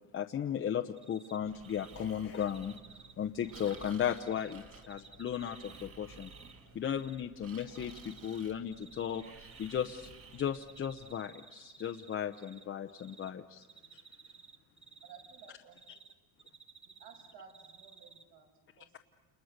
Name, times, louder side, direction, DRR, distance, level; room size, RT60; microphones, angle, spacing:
voice 1, 0.1-2.7 3.2-6.3 6.7-7.9 8.2-13.6, left 9 dB, 30° left, 4 dB, 0.8 m, -36 dB
Cricket, 1.0-1.4 1.6-2.0 2.3-4.5 4.8-6.5 6.8-7.2 7.6-8.4 8.7-10.1 10.3-12.6 12.9-13.3 13.6-16.1 16.4-18.2, right 5 dB, 15° right, 1.3 m, -55 dB
Breathing, 1.4-11.1, right 4 dB, 35° right, 2.1 m, -54 dB
voice 2, 15.0-15.8 16.8-18.9, right 6 dB, 60° right, 3 dB, 6.7 m, -56 dB
30.0 x 29.0 x 6.6 m, 1.2 s
cardioid pair, 145°, 40 cm